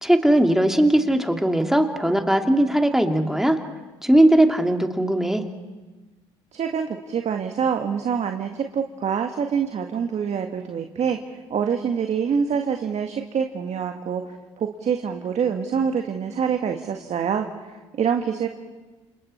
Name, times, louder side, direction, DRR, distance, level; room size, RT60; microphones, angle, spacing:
voice 1, 0.0-3.6 4.0-5.4, right 1 dB, 5° right, 4 dB, 2.6 m, -19 dB
voice 2, 6.5-18.5, right 7 dB, 50° right, 5 dB, 1.7 m, -26 dB
29.5 x 27.5 x 4.4 m, 1.2 s
hypercardioid pair, 55°, 15 cm